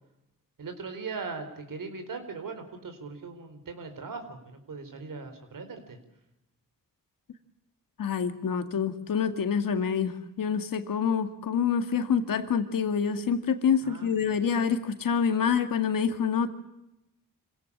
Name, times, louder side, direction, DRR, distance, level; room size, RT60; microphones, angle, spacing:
voice 1, 0.6-6.0 13.8-14.3, right 4 dB, 75° right, 7 dB, 4.6 m, -39 dB
voice 2, 8.0-16.5, left 7 dB, 85° left, 9 dB, 2.1 m, -27 dB
25.5 x 17.5 x 8.7 m, 0.88 s
cardioid pair, 65°, 33 cm